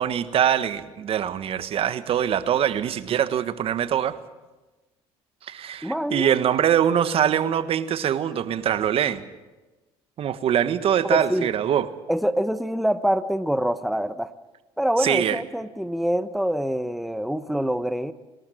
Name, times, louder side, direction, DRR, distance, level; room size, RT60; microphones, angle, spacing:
voice 1, 0.0-4.2 5.5-9.2 10.2-11.9 15.0-15.4, right 9 dB, 55° right, 13 dB, 1.4 m, -23 dB
voice 2, 5.8-6.4 11.1-11.5 12.1-14.3 14.8-18.1, equal, ahead, 12 dB, 1.0 m, -25 dB
26.0 x 13.0 x 9.3 m, 1.1 s
supercardioid pair, 85°, 12 cm